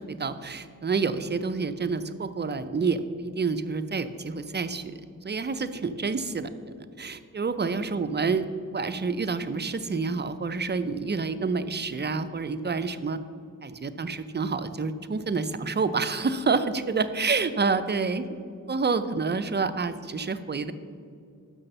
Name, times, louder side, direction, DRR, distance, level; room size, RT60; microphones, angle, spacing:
voice 1, 0.1-4.9 5.2-6.5 7.0-13.2 13.6-18.4 18.7-20.7, right 4 dB, 30° right, 11 dB, 0.5 m, -28 dB
6.1 x 5.8 x 6.6 m, 2.3 s
wide cardioid pair, 65°, 34 cm